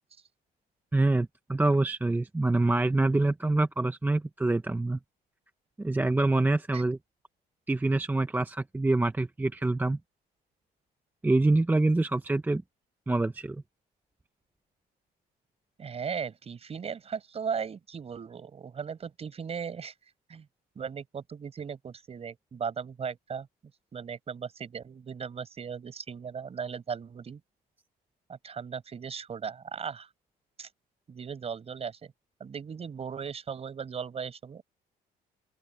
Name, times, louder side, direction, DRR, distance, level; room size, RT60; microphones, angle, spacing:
voice 1, 0.9-5.0 5.8-7.0 7.7-10.0 11.2-12.6 13.1-13.6, right 2 dB, 10° right, 0.8 m, -26 dB
voice 2, 15.8-19.9 20.3-20.5 20.7-23.5 23.9-27.4 28.3-30.1 30.6-30.7 31.1-32.1 32.4-34.6, right 6 dB, 35° right, 5.2 m, -37 dB
open air
cardioid pair, 110°, 17 cm